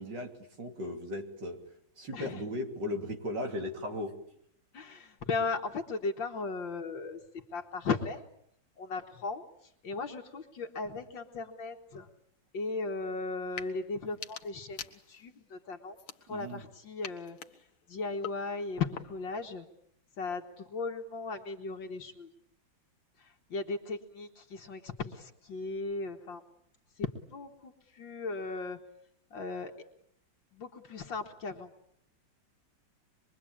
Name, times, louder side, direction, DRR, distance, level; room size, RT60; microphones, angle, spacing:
voice 1, 0.0-1.6 2.0-4.2 16.3-16.6, left 1 dB, 60° right, 4 dB, 3.6 m, -37 dB
voice 2, 4.7-8.2 8.8-9.4 9.8-12.1 12.5-16.0 16.3-17.4 17.9-19.7 20.2-22.3 23.2-26.4 27.0-28.8 29.3-29.7 30.5-31.7, left 4 dB, 70° left, 3 dB, 2.3 m, -37 dB
sound 1, 13.4-13.7 14.1-15.4 15.9-16.6 17.0-19.4, left 8 dB, 90° left, 2.2 m, -46 dB
25.5 x 22.5 x 8.8 m, 0.70 s
omnidirectional pair, 2.2 m